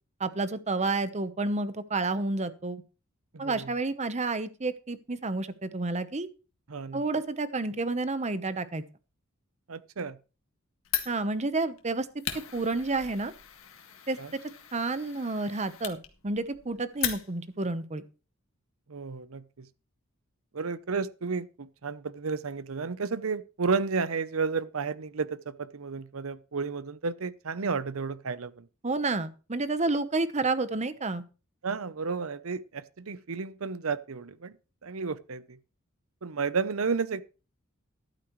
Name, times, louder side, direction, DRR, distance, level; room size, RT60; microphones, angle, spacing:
voice 1, 0.2-2.8 3.4-6.3 6.9-8.8 11.1-12.1 12.5-13.3 14.1-14.2 14.7-18.0 28.8-31.2, right 3 dB, 35° right, 0.9 m, -30 dB
voice 2, 3.3-3.7 6.7-7.0 9.7-10.2 14.2-14.3 18.9-19.7 20.5-28.7 31.6-34.6 34.8-35.6 36.2-37.2, right 5 dB, 75° right, 0.7 m, -32 dB
Fire, 10.8-17.6, left 10 dB, 70° left, 1.8 m, -38 dB
13.5 x 12.0 x 3.1 m
head